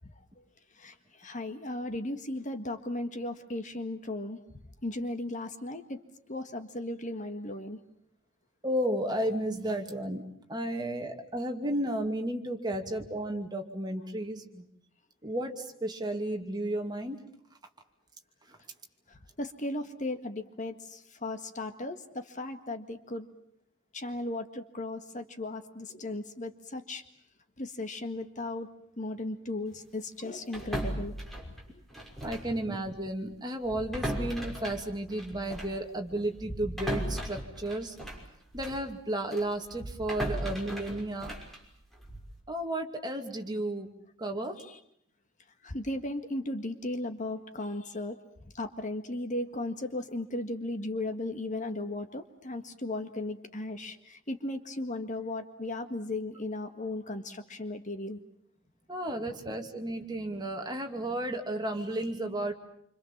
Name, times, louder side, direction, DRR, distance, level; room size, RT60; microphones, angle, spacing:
voice 1, 0.8-4.4 4.8-6.0 6.3-7.8 19.1-23.3 23.9-27.0 27.6-28.7 29.0-31.1 31.4-31.8 44.6-44.8 45.6-48.2 48.5-58.2, left 2 dB, 35° left, 8 dB, 1.8 m, -36 dB
voice 2, 8.6-10.2 10.5-14.7 15.2-17.2 32.2-37.9 38.5-41.4 42.5-43.9 44.2-44.6 58.9-62.5, right 1 dB, 20° right, 3 dB, 2.7 m, -33 dB
sound 1, 30.5-32.6 32.8-33.0 33.6-38.9 39.3-42.4, right 1 dB, ahead, 6.0 m, -37 dB
28.5 x 26.0 x 7.4 m, 0.72 s
head